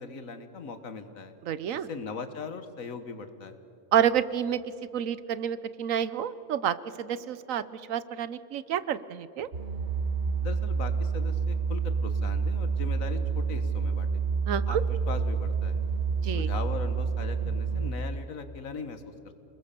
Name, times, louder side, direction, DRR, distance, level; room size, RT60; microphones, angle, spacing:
voice 1, 0.0-1.3 1.7-3.6 10.4-14.2 14.5-15.8 16.3-19.3, left 4 dB, 90° left, 9 dB, 1.9 m, -39 dB
voice 2, 1.5-1.9 3.9-4.6 4.9-9.5 14.5-14.8 16.2-16.5, right 9 dB, 80° right, 16 dB, 1.2 m, -29 dB
sound 1, 9.5-17.9, right 5 dB, 55° right, 1.7 m, -28 dB
29.0 x 20.5 x 6.9 m, 2.8 s
omnidirectional pair, 1.4 m